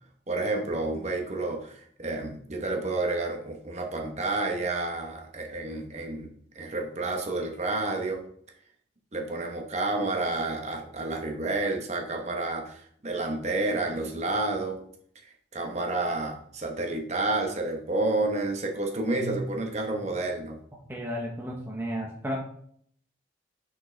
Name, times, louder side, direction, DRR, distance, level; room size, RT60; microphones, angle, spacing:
voice 1, 0.3-8.2 9.1-14.8 15.5-20.6, right 2 dB, 35° right, 2 dB, 1.0 m, -30 dB
voice 2, 20.9-22.4, equal, 10° right, -2 dB, 0.7 m, -33 dB
6.3 x 4.9 x 3.3 m, 0.63 s
head